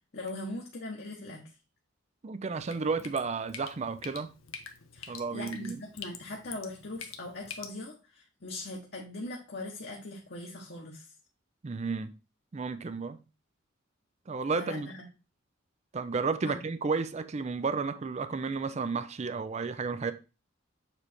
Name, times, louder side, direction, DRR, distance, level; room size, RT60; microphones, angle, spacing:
voice 1, 0.1-1.4 4.9-11.1 14.5-15.1 16.4-16.6, left 2 dB, 55° left, 1.1 m, -40 dB
voice 2, 2.2-4.3 5.1-5.8 11.6-12.1 12.5-13.2 14.3-14.9 15.9-20.1, right 4 dB, 35° right, 0.4 m, -32 dB
Drip, 2.6-7.7, left 7 dB, 80° left, 0.9 m, -46 dB
7.0 x 3.3 x 4.2 m
head